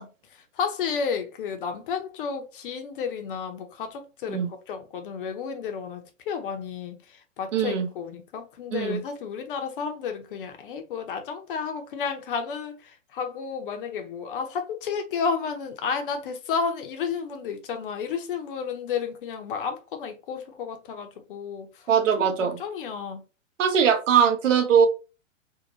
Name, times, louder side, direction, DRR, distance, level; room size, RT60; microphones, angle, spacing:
voice 1, 0.0-21.9 22.2-23.2, left 6 dB, 40° left, 0.6 m, -32 dB
voice 2, 7.5-7.9 8.7-9.0 21.9-22.6 23.6-24.9, right 7 dB, 65° right, 0.7 m, -21 dB
2.7 x 2.2 x 2.9 m
figure-of-eight pair, 115°, 40 cm